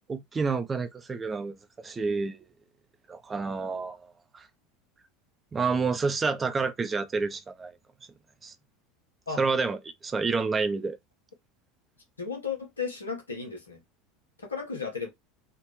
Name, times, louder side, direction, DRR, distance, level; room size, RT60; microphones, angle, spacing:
voice 1, 0.1-2.4 3.1-4.0 4.3-4.5 5.5-7.7 8.4-8.5 9.4-11.0, right 4 dB, 20° right, 0.7 m, -29 dB
voice 2, 12.2-13.8 14.4-15.1, left 5 dB, 85° left, 1.2 m, -34 dB
3.6 x 2.4 x 3.1 m
figure-of-eight pair, 75°, 0 cm